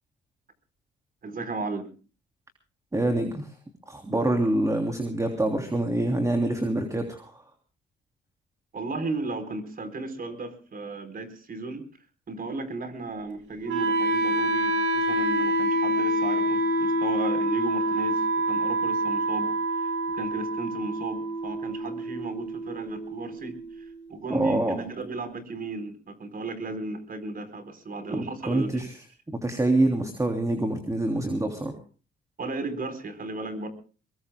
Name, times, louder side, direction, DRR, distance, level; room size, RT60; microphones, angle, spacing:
voice 1, 1.2-1.9 8.7-11.9 12.3-19.5 20.1-23.6 24.1-28.8 32.4-33.7, right 3 dB, 45° right, 10 dB, 4.3 m, -35 dB
voice 2, 2.9-3.5 3.9-7.4 24.3-24.8 28.1-29.0 29.3-31.7, right 1 dB, 15° right, 5 dB, 3.2 m, -26 dB
Wind instrument woodwind instrument, 13.7-23.7, right 1 dB, 85° right, 5.4 m, -27 dB
24.0 x 22.0 x 2.3 m, 0.35 s
cardioid pair, 90°, 20 cm